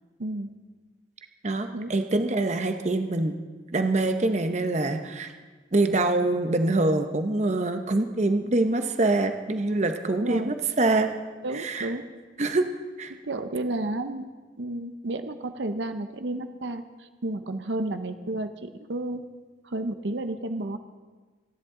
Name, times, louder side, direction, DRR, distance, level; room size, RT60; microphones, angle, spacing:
voice 1, 1.4-3.4 3.7-5.3 5.7-11.1 11.5-11.9 12.4-12.7 13.0-13.1, right 2 dB, 40° right, 7 dB, 0.8 m, -25 dB
voice 2, 10.2-10.5 11.4-12.0 13.1-14.3 14.6-19.2 19.6-20.8, right 2 dB, 70° right, 8 dB, 0.8 m, -32 dB
29.5 x 10.5 x 3.8 m, 1.4 s
head